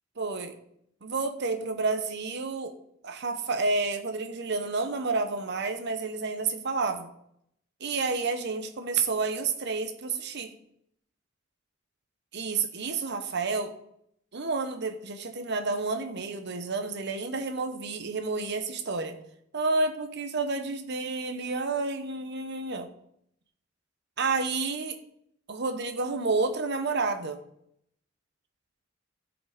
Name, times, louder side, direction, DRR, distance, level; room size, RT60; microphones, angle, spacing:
voice 1, 0.2-0.5 1.0-2.7 3.0-7.1 7.8-10.5 12.3-13.7 14.3-19.2 19.5-22.9 24.2-25.0 25.5-27.4, right 3 dB, 60° right, 7 dB, 1.0 m, -30 dB
13.0 x 5.1 x 5.1 m, 0.74 s
head